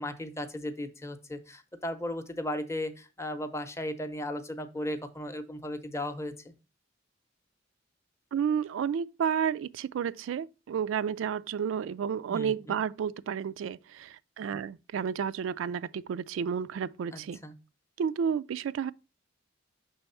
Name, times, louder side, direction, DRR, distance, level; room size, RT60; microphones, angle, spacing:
voice 1, 0.0-6.5 12.3-12.8 17.1-17.5, left 1 dB, 15° left, 0.6 m, -36 dB
voice 2, 8.3-17.4 18.0-18.9, right 7 dB, 80° right, 0.3 m, -31 dB
6.0 x 3.4 x 5.4 m
head